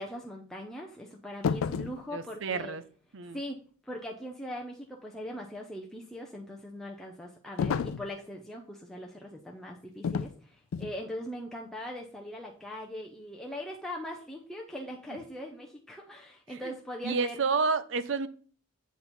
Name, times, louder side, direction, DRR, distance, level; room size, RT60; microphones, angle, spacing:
voice 1, 0.0-2.8 3.2-17.4, equal, ahead, 0.6 m, -41 dB
sound 1, 1.4-2.0 7.6-8.1 10.0-10.4 10.7-11.0, left 6 dB, 85° left, 0.4 m, -30 dB
voice 2, 2.1-2.8 3.1-3.4 17.0-18.3, right 4 dB, 60° right, 0.6 m, -29 dB
8.1 x 4.2 x 4.3 m
head